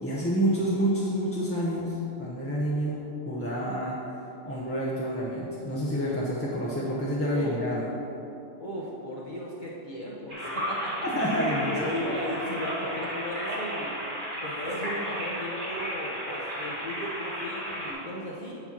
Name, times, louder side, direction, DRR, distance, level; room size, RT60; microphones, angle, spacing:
voice 1, 0.0-4.0 4.4-7.8 11.0-11.9, equal, 15° left, -7 dB, 0.7 m, -28 dB
voice 2, 3.4-3.7 7.2-7.6 8.6-11.1 11.7-14.0 14.4-18.6, left 1 dB, 40° left, -5 dB, 0.9 m, -36 dB
sound 1, 10.3-17.9, equal, 40° right, 2.1 m, -33 dB
8.8 x 4.4 x 5.9 m, 2.9 s
omnidirectional pair, 1.3 m